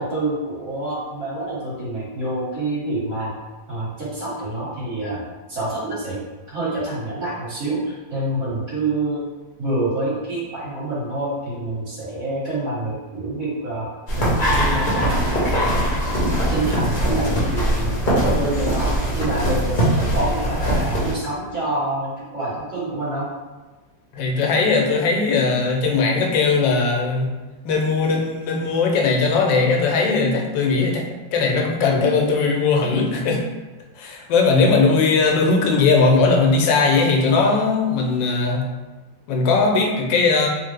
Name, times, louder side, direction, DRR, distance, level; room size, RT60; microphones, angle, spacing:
voice 1, 0.0-3.3 3.7-6.2 6.5-9.2 9.6-13.9 14.2-15.9 16.3-23.3, right 2 dB, 45° right, -10 dB, 1.6 m, -27 dB
sound 1, 14.1-21.1, equal, 55° left, 0.5 m, -21 dB
voice 2, 24.1-27.3 27.6-31.1 31.3-33.4 34.0-38.6 39.3-40.5, left 4 dB, 90° left, 1 dB, 1.3 m, -19 dB
3.4 x 2.1 x 3.2 m, 1.2 s
omnidirectional pair, 1.9 m